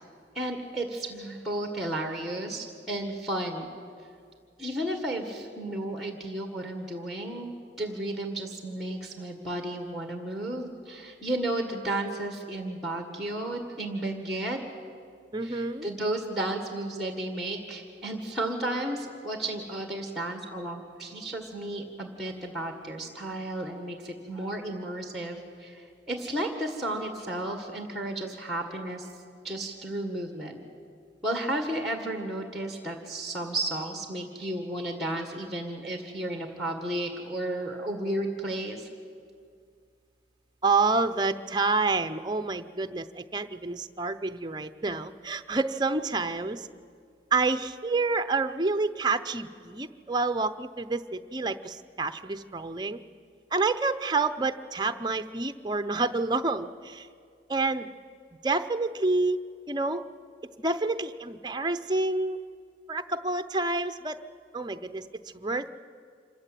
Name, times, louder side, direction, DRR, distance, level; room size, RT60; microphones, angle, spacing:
voice 1, 0.3-3.7 4.6-14.6 15.4-29.1 29.4-30.6 31.2-38.9, right 1 dB, ahead, 5 dB, 1.7 m, -33 dB
voice 2, 15.3-15.9 40.6-46.7 47.3-53.0 53.5-57.1 57.5-57.9 58.4-59.4 59.7-60.0 60.6-62.4 62.9-64.2 64.5-65.1 65.3-65.7, right 3 dB, 25° right, 10 dB, 0.7 m, -28 dB
26.0 x 15.0 x 9.2 m, 2.2 s
head